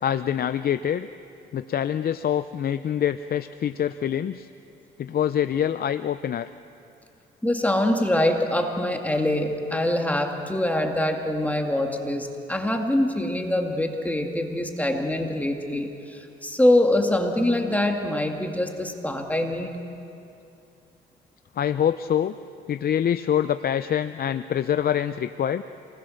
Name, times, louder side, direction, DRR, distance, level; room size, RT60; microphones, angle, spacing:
voice 1, 0.0-1.1 1.5-4.5 5.0-6.5 21.6-22.3 22.7-25.6, left 9 dB, 50° left, 11 dB, 0.6 m, -25 dB
voice 2, 7.4-19.8, left 1 dB, 5° left, 3 dB, 2.3 m, -24 dB
27.0 x 20.5 x 6.5 m, 2.7 s
cardioid pair, 90°, 20 cm